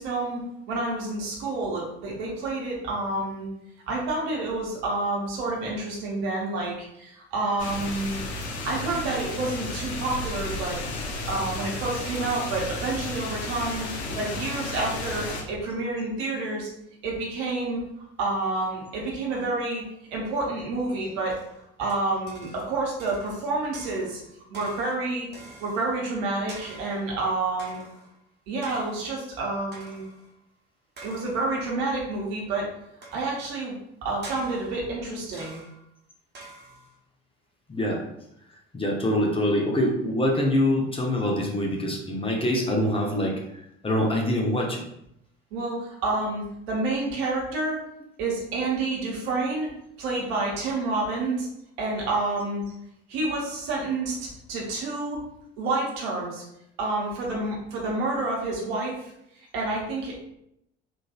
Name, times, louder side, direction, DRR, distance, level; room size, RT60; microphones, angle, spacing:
voice 1, 0.0-3.5 3.9-8.2 8.6-10.8 11.2-13.9 14.2-16.7 17.0-17.8 18.2-19.8 20.1-21.4 21.8-24.2 24.5-25.3 25.6-27.8 28.5-30.0 31.0-32.7 33.1-33.7 34.0-35.6 45.5-47.8 48.2-49.7 50.0-51.5 51.8-52.6 53.1-55.2 55.6-56.4 56.8-59.1 59.5-60.2, right 2 dB, 65° right, -2 dB, 1.0 m, -29 dB
sound 1, 7.6-15.4, left 2 dB, 75° left, 0.6 m, -33 dB
sound 2, 21.2-22.7 23.0-23.5 23.7-26.0 26.5-27.1 27.6-28.2 28.6-29.2 29.7-30.3 31.0-31.6 33.0-33.5 34.2-34.9 35.3-35.9 36.3-37.0, right 2 dB, 30° right, 1.0 m, -46 dB
voice 2, 37.7-38.0 38.7-43.4 43.8-44.8, left 1 dB, 15° left, -1 dB, 0.7 m, -24 dB
3.8 x 2.5 x 2.4 m, 0.79 s
figure-of-eight pair, 55°, 34 cm